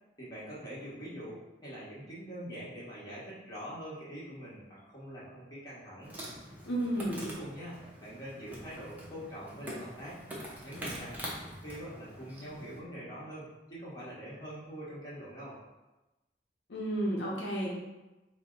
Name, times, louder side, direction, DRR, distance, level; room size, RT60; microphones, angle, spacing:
voice 1, 0.2-6.1 7.2-10.2 10.6-15.6, equal, 25° left, -8 dB, 1.3 m, -44 dB
Insect, 6.0-12.8, equal, 10° right, 0.7 m, -44 dB
voice 2, 6.7-7.2 16.7-17.7, right 1 dB, 80° left, -3 dB, 0.7 m, -32 dB
4.4 x 2.1 x 3.8 m, 1.1 s
head